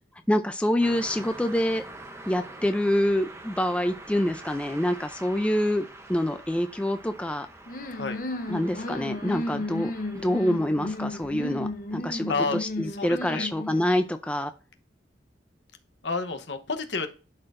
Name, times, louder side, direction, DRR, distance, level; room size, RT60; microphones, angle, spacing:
voice 1, 0.3-1.8 2.3-7.5 8.5-9.9 10.2-14.5, left 1 dB, 5° left, 7 dB, 0.4 m, -26 dB
Car passing by, 0.8-12.3, right 2 dB, 15° right, 0.7 m, -46 dB
sound 1, 7.7-14.1, left 2 dB, 45° left, 0.7 m, -34 dB
voice 2, 13.0-13.5 16.0-17.1, left 4 dB, 70° left, 7 dB, 1.0 m, -30 dB
11.5 x 4.4 x 2.6 m, 0.35 s
head